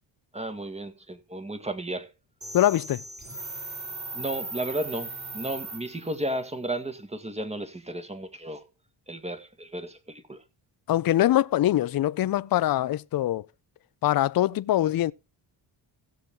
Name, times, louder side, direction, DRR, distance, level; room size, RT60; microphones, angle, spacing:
voice 1, 0.3-2.1 4.1-8.7 9.1-10.4, right 1 dB, 15° right, 1.8 m, -34 dB
sound 1, 2.4-6.3, right 2 dB, 35° right, 6.7 m, -38 dB
voice 2, 2.5-3.0 10.9-13.5 14.0-15.1, left 13 dB, 45° left, 0.5 m, -23 dB
16.5 x 7.3 x 3.7 m
cardioid pair, 85°, 49 cm